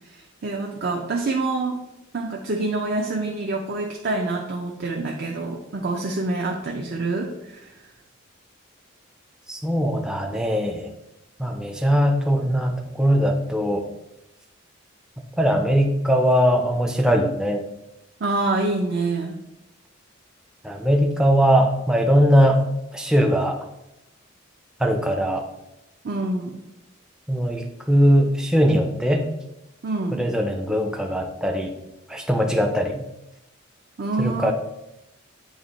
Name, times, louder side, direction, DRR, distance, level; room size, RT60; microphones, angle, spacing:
voice 1, 0.1-1.8 2.1-7.7 18.2-19.4 26.0-26.6 29.8-30.3 34.0-34.5, right 2 dB, 50° right, 0 dB, 0.6 m, -26 dB
voice 2, 9.5-10.9 11.4-13.9 15.4-17.6 20.6-22.6 22.9-23.6 24.8-25.4 27.3-29.3 30.1-31.7 32.1-33.0 34.2-34.5, equal, 5° right, 3 dB, 0.4 m, -20 dB
8.6 x 3.0 x 4.1 m, 0.91 s
head